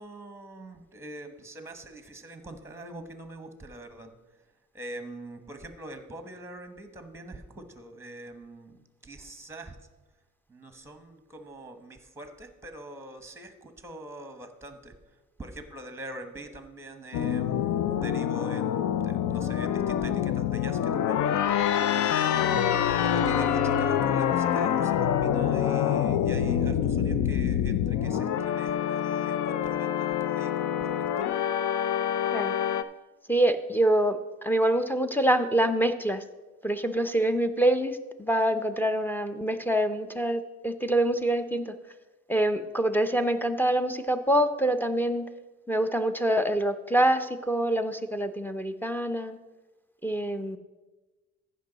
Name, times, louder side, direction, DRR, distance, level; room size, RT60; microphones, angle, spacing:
voice 1, 0.0-4.1 4.7-9.8 10.5-14.9 15.4-22.7 23.0-31.3, right 1 dB, 10° right, 8 dB, 1.1 m, -44 dB
sound 1, 17.1-32.8, left 9 dB, 75° left, 0.6 m, -26 dB
voice 2, 22.4-22.7 32.3-32.5 33.3-36.2 36.6-41.7 42.3-45.3 45.7-49.4 50.0-50.6, right 1 dB, 5° left, 9 dB, 0.6 m, -26 dB
14.5 x 5.5 x 4.0 m, 1.2 s
cardioid pair, 90°, 30 cm